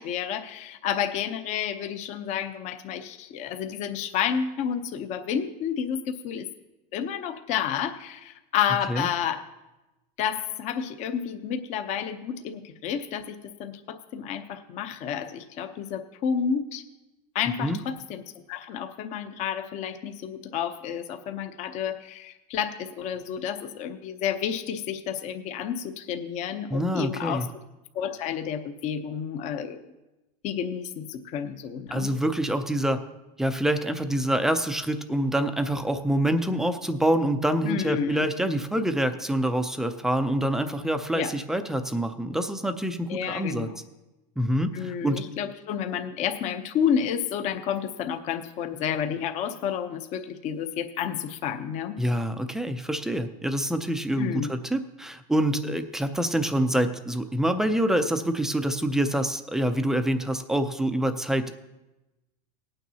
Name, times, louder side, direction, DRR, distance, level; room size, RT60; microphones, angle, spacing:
voice 1, 0.0-6.5 6.9-9.4 10.2-16.8 17.3-18.2 18.5-27.5 27.9-29.8 30.4-32.1 37.6-38.3 41.1-41.3 43.1-43.7 44.7-52.0 54.2-54.5, left 8 dB, 35° left, 8 dB, 0.7 m, -30 dB
voice 2, 26.7-27.5 31.9-33.0 33.4-43.7 44.4-45.2 52.0-61.5, right 1 dB, ahead, 8 dB, 0.4 m, -26 dB
18.5 x 9.0 x 2.8 m, 1.0 s
supercardioid pair, 155°, 20 cm